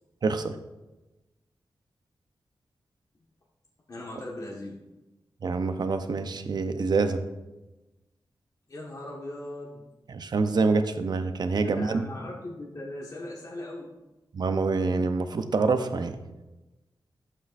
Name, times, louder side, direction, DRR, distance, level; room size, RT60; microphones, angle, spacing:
voice 1, 0.2-0.6 5.4-7.2 10.1-12.1 14.3-16.2, right 4 dB, 60° right, 9 dB, 0.7 m, -26 dB
voice 2, 3.9-4.8 8.7-9.8 11.6-13.9, left 1 dB, 45° left, -3 dB, 1.5 m, -39 dB
11.5 x 7.9 x 2.5 m, 1.1 s
wide cardioid pair, 90°, 8 cm